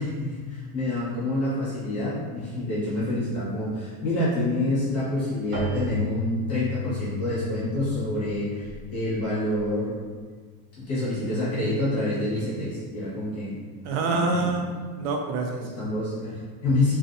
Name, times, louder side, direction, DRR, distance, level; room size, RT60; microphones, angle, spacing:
voice 1, 0.0-10.0 10.8-13.5 14.1-14.5 15.6-16.9, left 1 dB, 35° left, -10 dB, 1.4 m, -27 dB
Keyboard (musical), 5.5-10.0, left 3 dB, 30° right, 0.5 m, -34 dB
voice 2, 13.8-15.9, right 3 dB, 85° right, 2 dB, 0.6 m, -27 dB
2.9 x 2.7 x 2.6 m, 1.5 s
cardioid pair, 145°, 42 cm